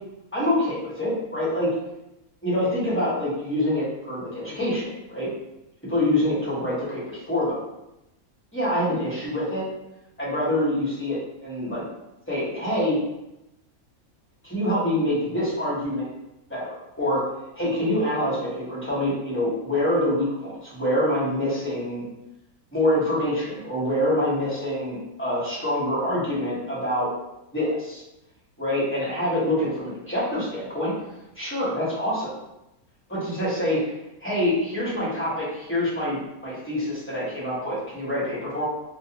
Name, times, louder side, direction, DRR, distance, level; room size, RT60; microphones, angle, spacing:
voice 1, 0.3-1.7 2.4-5.3 5.9-7.6 8.5-9.6 10.2-11.8 12.3-13.0 14.4-16.1 16.5-17.2 17.6-22.0 22.7-27.1 27.5-28.0 28.6-30.9 31.4-32.3 33.1-33.8 34.2-38.7, left 1 dB, 15° left, -8 dB, 0.6 m, -25 dB
2.4 x 2.2 x 2.8 m, 0.90 s
omnidirectional pair, 1.5 m